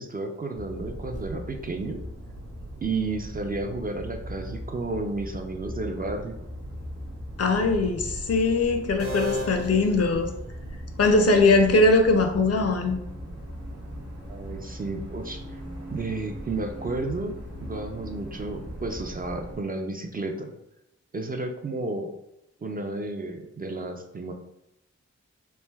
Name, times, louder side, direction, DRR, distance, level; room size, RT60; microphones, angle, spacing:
voice 1, 0.0-2.0 2.8-6.4 14.3-15.6 15.9-17.3 17.6-20.5 21.1-22.1 22.6-24.3, right 3 dB, 30° right, 4 dB, 0.4 m, -32 dB
sound 1, 0.5-19.6, equal, 55° right, 0.8 m, -39 dB
voice 2, 7.4-10.3 11.0-13.0, left 3 dB, 55° left, 5 dB, 0.5 m, -21 dB
sound 2, 9.0-10.9, left 3 dB, 80° right, 0.9 m, -36 dB
3.2 x 2.6 x 2.2 m, 0.86 s
cardioid pair, 60°, 29 cm